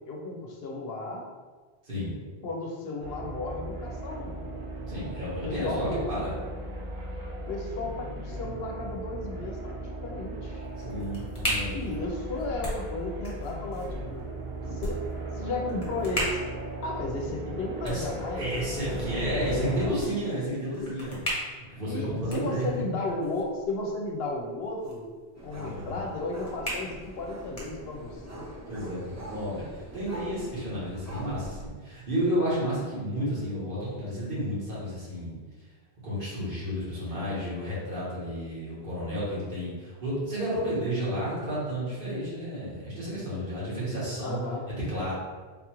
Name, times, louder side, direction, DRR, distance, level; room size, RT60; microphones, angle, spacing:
voice 1, 0.1-1.2 2.4-4.5 5.4-6.1 7.5-10.7 11.7-15.0 15.3-16.4 16.8-18.5 18.9-19.9 21.8-25.1 25.4-28.5 44.2-44.7, left 2 dB, 75° left, 0 dB, 0.8 m, -34 dB
sound 1, 3.0-19.9, right 1 dB, 90° right, 1.1 m, -37 dB
voice 2, 4.9-6.3 10.8-11.9 14.6-14.8 17.8-18.1 18.3-21.2 21.6-22.8 25.5-25.9 28.7-35.3 36.0-44.4 44.7-45.1, equal, 55° right, -8 dB, 1.5 m, -32 dB
sound 2, 10.5-28.3, equal, 35° left, 1.1 m, -39 dB
sound 3, 25.4-31.7, equal, 25° right, 0.4 m, -44 dB
3.8 x 2.4 x 2.9 m, 1.4 s
omnidirectional pair, 1.1 m